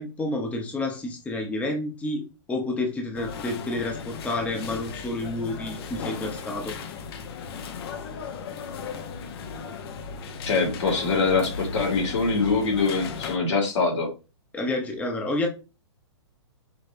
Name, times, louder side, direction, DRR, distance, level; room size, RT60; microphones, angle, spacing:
voice 1, 0.0-6.7 14.5-15.5, left 2 dB, 10° left, 2 dB, 0.7 m, -29 dB
sound 1, 3.1-13.4, left 5 dB, 55° left, 0.8 m, -36 dB
voice 2, 10.5-14.1, left 4 dB, 75° left, 0 dB, 2.4 m, -23 dB
5.1 x 3.2 x 2.6 m, 0.30 s
hypercardioid pair, 125°, 15 cm